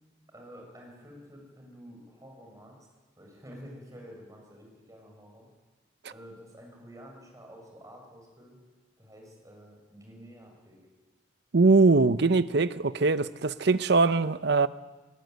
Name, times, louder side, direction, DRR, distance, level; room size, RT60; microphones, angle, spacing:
voice 1, 0.3-2.8 3.2-5.5 6.1-8.6 9.0-10.8, equal, 20° right, 6.8 m, -49 dB
voice 2, 11.5-14.7, right 3 dB, 65° right, 0.8 m, -22 dB
20.0 x 18.5 x 9.3 m
head